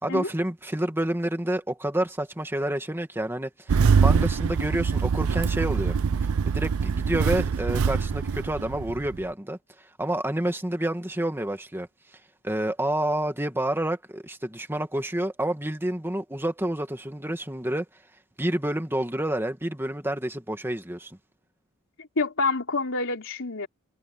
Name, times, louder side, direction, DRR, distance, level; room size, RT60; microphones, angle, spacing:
voice 1, 0.0-3.7 4.0-6.0 6.5-9.6 10.0-11.9 12.4-17.9 18.4-21.2, right 1 dB, 10° right, 2.1 m, -28 dB
Engine starting, 3.7-9.2, right 5 dB, 75° right, 0.5 m, -24 dB
voice 2, 22.0-23.7, left 3 dB, 65° left, 3.4 m, -27 dB
head